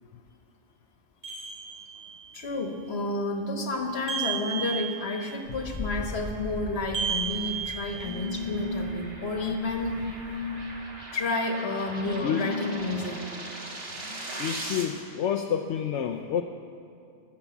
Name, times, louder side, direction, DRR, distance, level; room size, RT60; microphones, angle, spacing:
sound 1, 1.2-2.2 4.1-5.3 6.9-8.4, right 8 dB, 40° right, 3.4 m, -33 dB
voice 1, 2.3-10.8 11.1-13.2 13.9-14.6, left 2 dB, 65° left, 3 dB, 1.6 m, -31 dB
Wind, 5.5-11.0, left 2 dB, 20° left, 0.9 m, -41 dB
sound 2, 6.1-14.8, right 2 dB, 60° right, 1.8 m, -41 dB
voice 2, 14.4-16.4, left 8 dB, 80° left, 3 dB, 0.9 m, -29 dB
19.0 x 7.3 x 7.0 m, 2.5 s
omnidirectional pair, 1.2 m